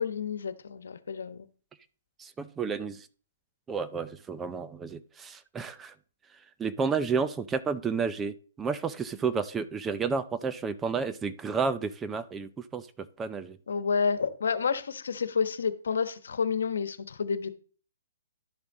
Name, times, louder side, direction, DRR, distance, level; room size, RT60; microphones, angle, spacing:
voice 1, 0.0-1.5 13.7-17.5, left 5 dB, 75° left, 12 dB, 1.2 m, -29 dB
voice 2, 2.2-3.1 3.7-5.9 6.6-12.9 13.2-13.6, right 5 dB, 15° right, 12 dB, 0.5 m, -31 dB
11.5 x 7.1 x 4.1 m, 0.41 s
hypercardioid pair, 150°, 0 cm